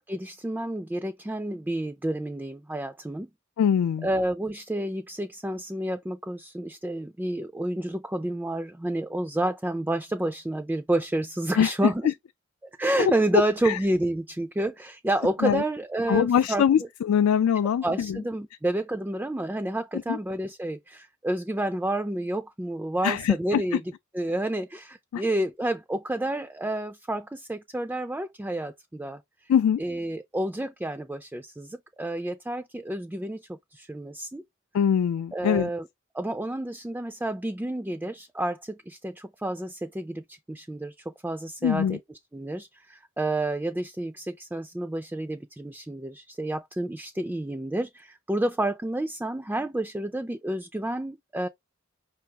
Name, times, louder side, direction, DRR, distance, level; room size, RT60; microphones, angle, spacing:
voice 1, 0.1-3.3 4.0-12.1 12.8-16.6 17.6-23.8 24.1-29.2 29.8-34.4 35.3-35.9 36.1-42.0 42.3-51.5, right 1 dB, 10° right, 0.3 m, -30 dB
voice 2, 3.6-4.1 11.6-12.1 13.0-13.1 13.6-13.8 15.4-15.6 16.1-18.2 20.1-20.2 23.0-23.8 25.1-25.2 29.5-29.8 34.7-35.7 41.6-42.0, left 8 dB, 85° left, 0.3 m, -23 dB
5.3 x 3.4 x 2.8 m
head